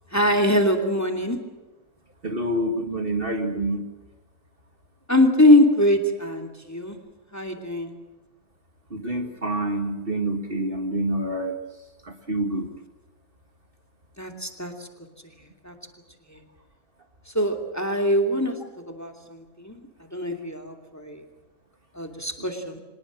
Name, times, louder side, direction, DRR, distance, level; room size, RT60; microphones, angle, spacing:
voice 1, 0.1-1.4 5.1-7.0 7.3-7.9 14.2-14.9 15.4-15.7 16.3-16.4 17.3-18.6 18.9-19.8 20.1-21.2 21.9-22.8, left 1 dB, 10° left, 4 dB, 2.7 m, -22 dB
voice 2, 2.2-3.9 8.9-11.6 12.0-12.7, right 1 dB, 40° right, 5 dB, 2.2 m, -27 dB
25.5 x 20.0 x 7.6 m, 1.1 s
omnidirectional pair, 1.5 m